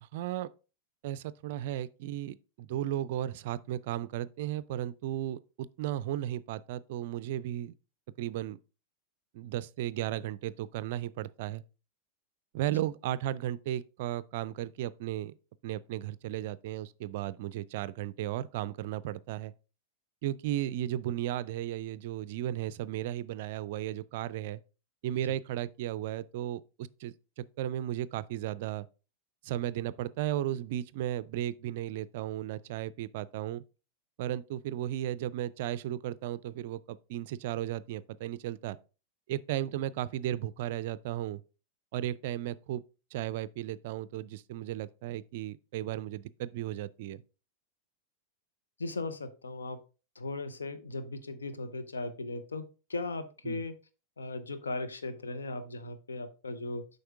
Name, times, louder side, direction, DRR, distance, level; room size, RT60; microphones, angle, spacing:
voice 1, 0.0-0.5 1.0-7.7 8.2-8.6 9.3-11.6 12.5-15.3 15.6-19.5 20.2-24.6 25.0-28.9 29.4-33.6 34.2-38.8 39.3-41.4 41.9-42.8 43.1-47.2 53.4-53.6, right 12 dB, 50° right, 0.4 m, -35 dB
voice 2, 48.8-49.8 50.2-52.6 52.9-53.7 54.2-56.8, left 3 dB, 75° left, 0.8 m, -37 dB
7.8 x 5.3 x 3.6 m
figure-of-eight pair, 90°, 0 cm